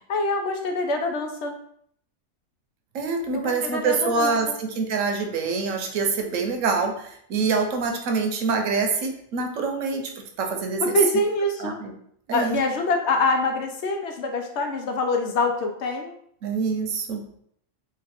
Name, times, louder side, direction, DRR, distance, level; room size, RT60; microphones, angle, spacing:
voice 1, 0.1-1.5 3.3-4.6 10.8-11.8 12.3-16.1, left 2 dB, 70° left, 3 dB, 0.9 m, -25 dB
voice 2, 2.9-10.8 11.6-11.9 12.3-12.6 16.4-17.2, right 4 dB, 90° right, 4 dB, 1.0 m, -25 dB
3.1 x 2.5 x 4.2 m, 0.67 s
omnidirectional pair, 1.3 m